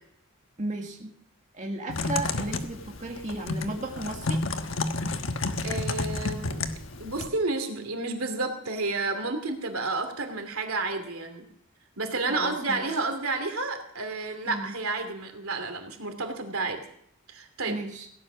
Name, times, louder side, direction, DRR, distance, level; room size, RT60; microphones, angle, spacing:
voice 1, 0.6-1.1 1.5-4.4 12.3-12.9 14.5-14.7 17.7-18.1, right 2 dB, 35° right, 0 dB, 2.0 m, -34 dB
Typing, 1.9-7.3, left 3 dB, 65° left, 1.3 m, -31 dB
voice 2, 5.6-6.7 7.0-11.4 12.0-16.8 17.3-17.8, right 3 dB, 85° right, 5 dB, 2.8 m, -31 dB
17.0 x 11.5 x 6.3 m, 0.71 s
head